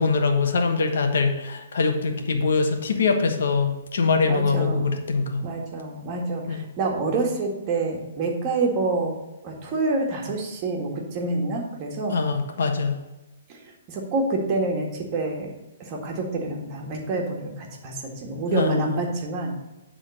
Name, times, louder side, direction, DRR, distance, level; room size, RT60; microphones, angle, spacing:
voice 1, 0.0-5.4 6.5-6.7 12.1-13.0 18.5-19.0, left 4 dB, 75° left, 5 dB, 1.2 m, -23 dB
voice 2, 4.2-4.9 5.4-9.2 9.4-12.2 13.5-15.5 15.8-19.5, right 3 dB, 30° right, 1 dB, 1.8 m, -27 dB
9.7 x 3.9 x 6.5 m, 1.0 s
hypercardioid pair, 150°, 0 cm